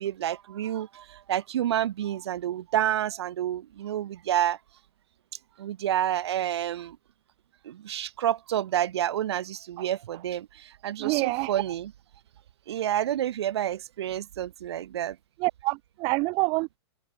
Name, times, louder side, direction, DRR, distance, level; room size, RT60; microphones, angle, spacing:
voice 1, 0.0-4.6 5.6-7.0 7.6-11.9 12.7-15.2, right 11 dB, 70° right, 1.7 m, -29 dB
voice 2, 11.0-11.5 15.4-16.8, right 27 dB, 30° right, 1.0 m, -27 dB
hypercardioid pair, 150°, 15 cm